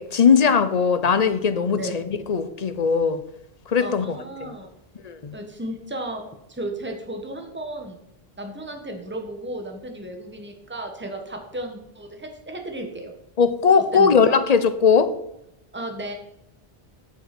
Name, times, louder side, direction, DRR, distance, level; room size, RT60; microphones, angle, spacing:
voice 1, 0.0-3.2 3.7-4.5 5.0-5.3 13.4-15.1, left 6 dB, 45° left, 11 dB, 0.7 m, -19 dB
voice 2, 1.7-2.1 3.8-4.7 5.3-6.2 6.5-8.0 8.4-13.1 13.9-14.2 15.7-16.1, right 1 dB, 10° right, 3 dB, 1.3 m, -34 dB
8.1 x 7.2 x 6.0 m, 0.82 s
omnidirectional pair, 1.1 m